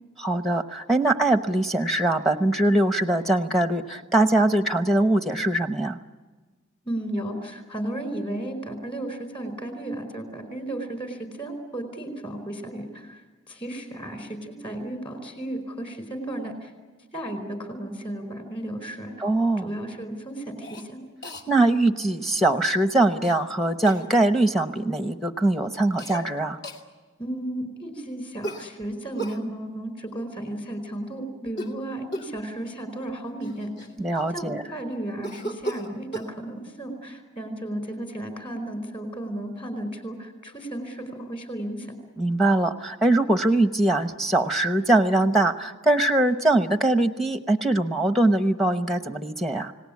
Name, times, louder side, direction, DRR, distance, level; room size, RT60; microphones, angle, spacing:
voice 1, 0.2-6.0 19.2-19.7 21.5-26.6 34.0-34.6 42.2-49.7, right 2 dB, ahead, 8 dB, 0.9 m, -22 dB
voice 2, 6.8-13.2 13.5-16.7 17.1-19.1 19.6-21.0 27.2-33.7 34.3-41.9, right 1 dB, 25° left, 6 dB, 4.5 m, -34 dB
Cough, 20.6-20.9 21.2-21.4 23.2-23.4 23.9-24.1 26.0-26.3 26.6-26.8 28.4-29.4 31.5-31.8 32.1-32.4 33.1-33.2 33.4-34.4 35.2-36.3, right 1 dB, 50° left, 2.5 m, -35 dB
29.5 x 18.5 x 8.5 m, 1.3 s
head